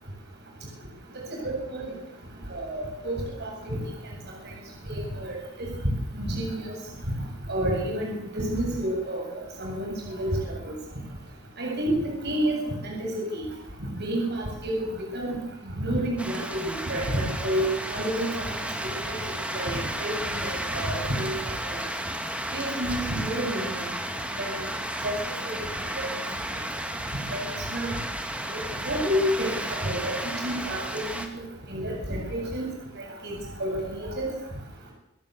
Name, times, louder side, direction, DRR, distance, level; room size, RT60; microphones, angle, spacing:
voice 1, 1.4-1.9 2.5-3.8 4.9-5.3 6.2-6.6 7.5-9.9 10.2-10.3 10.6-10.7 11.6-11.9 12.2-12.6 12.8-13.5 14.0-14.9 15.1-15.4 15.8-16.6 16.9-18.3 19.1-19.2 19.5-20.1 20.4-21.3 22.5-23.8 24.4-24.6 25.0-25.2 25.4-25.6 27.3-27.4 27.7-28.0 28.5-29.5 29.8-30.1 30.4-30.8 31.7-32.6 33.6-34.3, right 1 dB, 55° right, 0 dB, 8.0 m, -29 dB
sound 1, 16.2-31.3, right 1 dB, 5° right, 2.9 m, -33 dB
27.5 x 17.0 x 8.4 m, 0.81 s
head